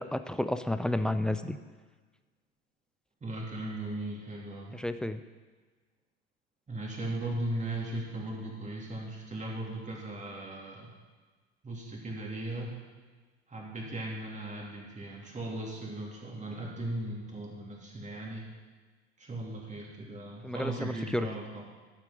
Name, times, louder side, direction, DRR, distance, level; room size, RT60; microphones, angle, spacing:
voice 1, 0.0-1.6 4.7-5.2 20.4-21.3, left 1 dB, ahead, 10 dB, 0.3 m, -31 dB
voice 2, 3.2-4.8 6.7-10.9 11.6-12.7 13.5-18.4 19.2-21.6, right 1 dB, 20° right, -2 dB, 2.9 m, -37 dB
11.5 x 7.3 x 5.1 m, 1.4 s
figure-of-eight pair, 65°, 33 cm